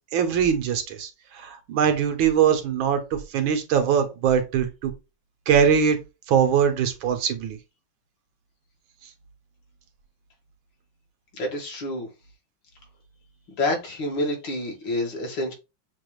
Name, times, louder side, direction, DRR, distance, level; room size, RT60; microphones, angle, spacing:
voice 1, 0.1-4.9 5.5-6.0 6.3-7.6, right 7 dB, 90° right, 1.7 m, -22 dB
voice 2, 11.3-12.1 13.6-15.5, left 1 dB, 75° left, 2.2 m, -28 dB
6.9 x 2.4 x 3.1 m
omnidirectional pair, 2.1 m